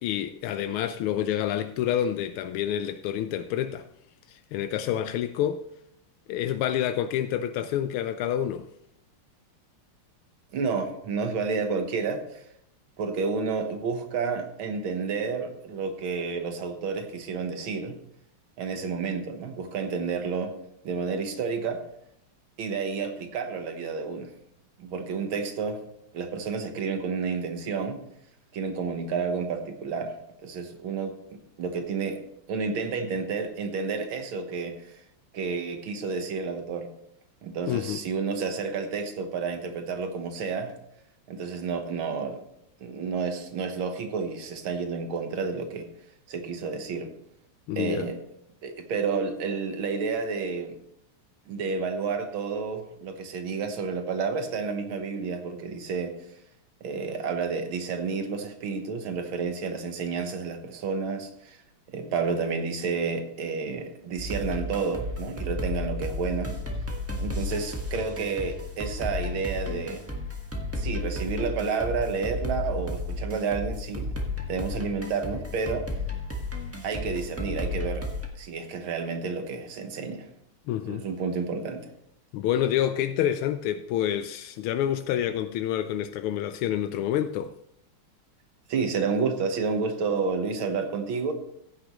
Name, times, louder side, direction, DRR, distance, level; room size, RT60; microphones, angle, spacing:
voice 1, 0.0-3.8 4.3-5.6 6.3-8.7 37.7-38.0 47.7-48.1 80.7-81.0 82.3-87.5, left 10 dB, 85° left, 1.4 m, -28 dB
voice 2, 10.5-12.4 13.0-18.0 18.6-20.5 20.8-21.8 22.6-24.3 24.8-25.8 26.1-28.0 28.5-30.1 30.4-32.2 32.5-34.8 35.3-36.9 37.4-40.7 41.3-42.4 42.8-45.9 46.3-47.1 47.8-48.2 48.6-50.7 51.5-56.1 56.8-61.6 61.9-66.6 67.2-70.0 70.8-74.1 74.5-75.8 76.8-78.1 78.4-80.3 80.9-81.9 88.7-91.3, right 5 dB, 70° right, 2.0 m, -30 dB
sound 1, 64.2-78.3, left 2 dB, 10° right, 1.2 m, -33 dB
15.0 x 9.7 x 3.1 m
omnidirectional pair, 2.4 m